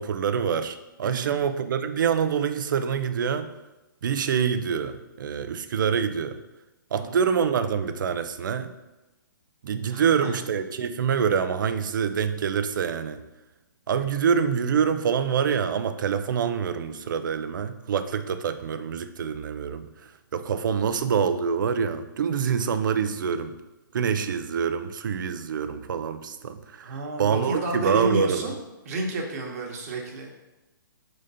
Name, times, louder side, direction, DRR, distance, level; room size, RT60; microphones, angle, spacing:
voice 1, 0.0-3.5 4.0-6.4 6.9-8.7 9.6-13.2 13.9-19.8 20.3-23.5 23.9-28.5, right 7 dB, 65° right, 10 dB, 0.6 m, -26 dB
voice 2, 1.0-1.4 6.9-7.2 9.9-10.3 26.8-28.5 28.8-30.3, right 2 dB, 45° right, 1 dB, 1.3 m, -31 dB
5.1 x 4.0 x 5.5 m, 1.0 s
hypercardioid pair, 155°, 11 cm